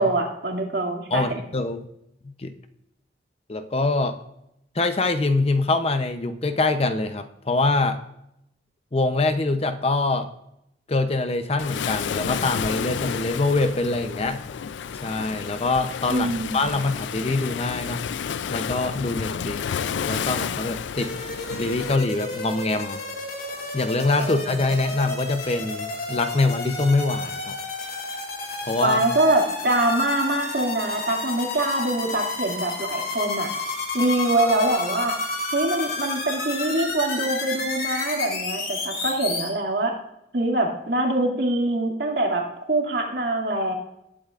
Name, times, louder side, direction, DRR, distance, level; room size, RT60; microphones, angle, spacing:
voice 1, 0.0-1.4 16.1-16.8 24.2-24.5 28.8-33.5 33.9-35.1 35.5-39.9 40.3-43.7, right 1 dB, 60° right, 0 dB, 2.3 m, -24 dB
voice 2, 1.1-1.8 2.2-2.5 3.5-4.2 4.7-8.0 8.9-10.3 10.9-14.4 14.9-18.0 18.5-19.6 20.1-21.1 21.5-23.0 23.7-27.6 28.6-29.0, left 2 dB, 35° left, 9 dB, 0.6 m, -24 dB
Waves surf, 11.6-22.0, left 7 dB, 85° left, 0.4 m, -31 dB
sound 1, 20.9-39.5, left 3 dB, 55° left, 2.3 m, -31 dB
19.0 x 8.6 x 2.5 m, 0.82 s
head